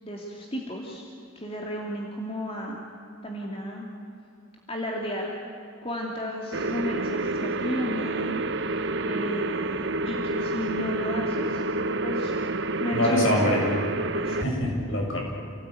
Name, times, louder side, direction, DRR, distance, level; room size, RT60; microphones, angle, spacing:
voice 1, 0.0-1.0 1.4-2.8 3.2-3.9 4.7-5.3 5.8-11.6 12.0-12.3 12.8-13.3 14.1-14.4, equal, 25° left, -1 dB, 2.6 m, -33 dB
sound 1, 6.5-14.5, right 2 dB, 55° right, 1.0 m, -29 dB
voice 2, 12.9-13.7 14.3-15.2, left 1 dB, 60° left, -1 dB, 7.9 m, -24 dB
29.0 x 18.0 x 9.4 m, 2.7 s
head